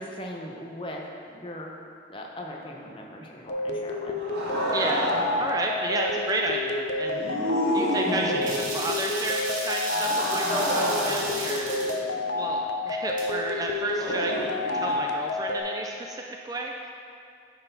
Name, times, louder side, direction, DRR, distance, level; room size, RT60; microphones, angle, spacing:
voice 1, 0.0-1.8 2.1-4.2, left 1 dB, 30° left, 0 dB, 0.7 m, -39 dB
sound 1, 3.5-15.6, left 2 dB, 65° left, 0.5 m, -30 dB
sound 2, 4.2-5.6 7.0-8.8 9.9-12.5 13.9-14.9, equal, 60° right, 1.7 m, -30 dB
voice 2, 4.7-5.1 5.4-7.3 7.7-11.7 12.3-14.4 14.7-16.9, right 2 dB, 20° right, 0 dB, 0.3 m, -31 dB
sound 3, 8.4-12.0 13.2-13.3, right 1 dB, 45° right, 1.3 m, -34 dB
9.4 x 4.1 x 4.0 m, 2.4 s
head